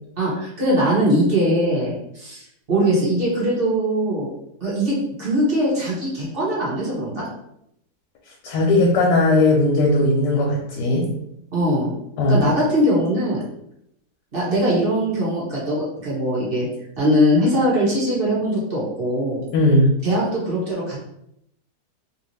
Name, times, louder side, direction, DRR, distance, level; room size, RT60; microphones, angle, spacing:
voice 1, 0.2-4.3 4.6-7.2 11.5-11.9 12.3-13.4 14.3-16.7 17.0-19.4 20.0-21.0, equal, 40° right, -6 dB, 1.2 m, -21 dB
voice 2, 8.4-11.1 12.2-12.5 19.5-19.9, left 2 dB, 90° left, -1 dB, 1.2 m, -17 dB
2.8 x 2.4 x 3.2 m, 0.77 s
omnidirectional pair, 1.8 m